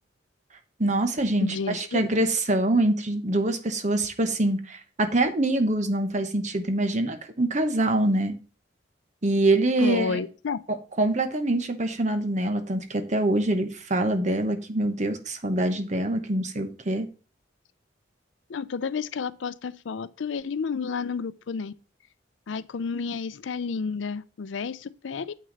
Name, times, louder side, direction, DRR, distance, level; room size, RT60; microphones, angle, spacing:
voice 1, 0.8-8.3 9.2-10.2 11.0-17.1, right 1 dB, 40° right, 1.0 m, -25 dB
voice 2, 1.4-2.0 9.8-10.6 18.5-21.7 22.5-25.3, left 5 dB, 80° left, 0.5 m, -31 dB
7.9 x 6.0 x 4.0 m
head